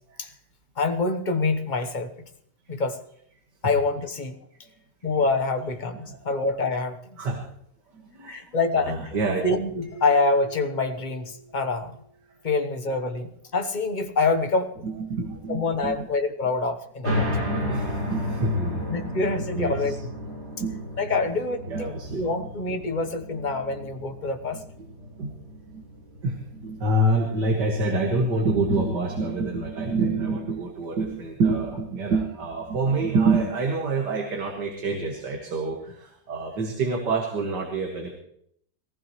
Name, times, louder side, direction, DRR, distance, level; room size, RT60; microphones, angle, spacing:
voice 1, 0.8-2.2 2.7-3.0 3.6-4.4 5.0-7.0 8.3-9.2 9.4-11.9 12.4-14.7 15.5-17.1 18.9-19.9 21.0-24.6, left 3 dB, 35° left, 6 dB, 1.0 m, -26 dB
voice 2, 7.9-9.5 14.8-16.1 17.2-19.2 19.5-20.0 20.3-20.9 21.7-22.2 25.2-25.3 25.7-25.8 26.2-38.1, right 3 dB, 85° right, 1 dB, 2.4 m, -27 dB
sound 1, 9.8-12.4, right 3 dB, 45° right, 3.0 m, -45 dB
sound 2, 17.0-28.1, left 1 dB, 70° right, 5.2 m, -33 dB
22.0 x 15.0 x 3.1 m, 0.69 s
omnidirectional pair, 1.8 m